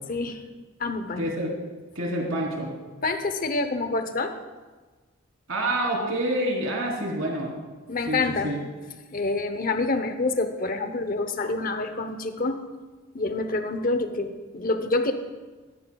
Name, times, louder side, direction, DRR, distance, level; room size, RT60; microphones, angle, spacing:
voice 1, 0.1-0.4 0.8-1.3 3.0-4.4 7.9-8.5 9.1-12.6 13.1-15.1, left 3 dB, 40° left, 8 dB, 0.8 m, -27 dB
voice 2, 1.2-1.5 2.0-2.7 5.5-7.5 8.1-8.6, right 1 dB, 75° right, -2 dB, 3.3 m, -27 dB
16.0 x 15.0 x 2.3 m, 1.3 s
head